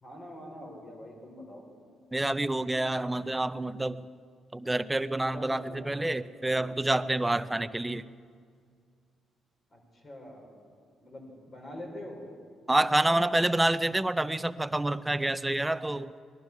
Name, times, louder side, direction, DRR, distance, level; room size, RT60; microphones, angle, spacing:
voice 1, 0.0-1.6 5.3-5.9 9.7-10.5 11.0-12.3, left 1 dB, 40° left, 1 dB, 4.3 m, -44 dB
voice 2, 2.1-4.1 4.5-8.0 12.7-16.1, right 1 dB, 10° right, 13 dB, 0.5 m, -28 dB
20.0 x 11.5 x 6.0 m, 2.1 s
cardioid pair, 90°, 0 cm